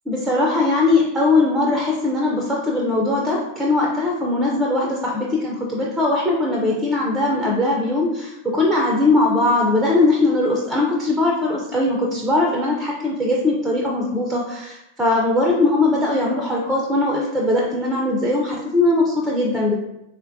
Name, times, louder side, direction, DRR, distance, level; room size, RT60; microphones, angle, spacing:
voice 1, 0.1-19.7, left 2 dB, 5° right, -2 dB, 0.5 m, -20 dB
3.8 x 2.1 x 2.6 m, 0.87 s
figure-of-eight pair, 90°, 0 cm